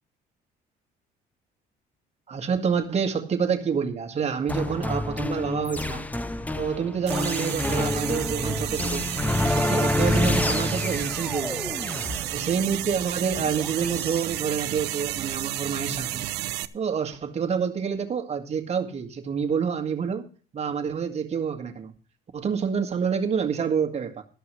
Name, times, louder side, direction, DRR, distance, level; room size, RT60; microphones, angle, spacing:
voice 1, 2.3-6.1 6.6-9.1 9.4-11.8 12.3-16.3 16.7-20.3 20.5-21.9 22.3-24.2, right 6 dB, 40° right, 5 dB, 1.9 m, -28 dB
sound 1, 4.5-14.2, left 2 dB, 10° left, 0.6 m, -28 dB
sound 2, 7.1-16.7, right 15 dB, 85° right, 0.7 m, -32 dB
13.0 x 5.5 x 8.0 m, 0.40 s
cardioid pair, 110°, 17 cm